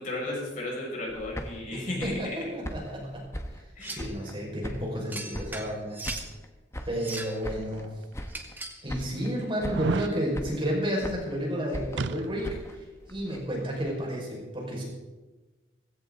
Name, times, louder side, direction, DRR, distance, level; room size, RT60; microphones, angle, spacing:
voice 1, 0.0-2.5 3.7-4.1 8.4-8.6, left 1 dB, 45° left, -3 dB, 6.3 m, -35 dB
sound 1, 1.1-4.4 4.6-5.8 6.0-7.9 8.1-8.6 8.9-9.3 9.6-10.0 10.3-11.4 11.7-13.9, equal, 15° left, 1.3 m, -40 dB
voice 2, 2.0-3.2 3.9-6.0 6.9-7.9 8.8-14.8, equal, 30° right, -2 dB, 5.3 m, -31 dB
sound 2, 3.8-4.1 5.1-6.3 6.9-7.4 8.3-8.8, right 2 dB, 10° right, 1.5 m, -38 dB
sound 3, 7.6-7.7 8.4-8.5 9.6-10.2 12.0-12.6 12.9-13.0, right 4 dB, 75° right, 0.5 m, -31 dB
17.5 x 16.5 x 3.9 m, 1.2 s
head